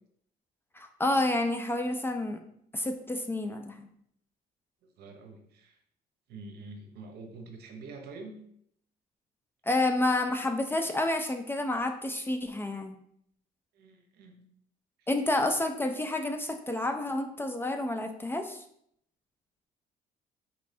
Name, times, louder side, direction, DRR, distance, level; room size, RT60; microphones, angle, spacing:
voice 1, 0.7-2.4 2.7-3.9 9.7-13.0 15.1-18.6, left 2 dB, 15° left, 5 dB, 0.3 m, -29 dB
voice 2, 5.0-5.8 6.3-8.4 13.7-14.4 15.0-15.1, right 3 dB, 70° right, 4 dB, 0.7 m, -46 dB
4.2 x 3.1 x 2.7 m, 0.69 s
cardioid pair, 110°, 17 cm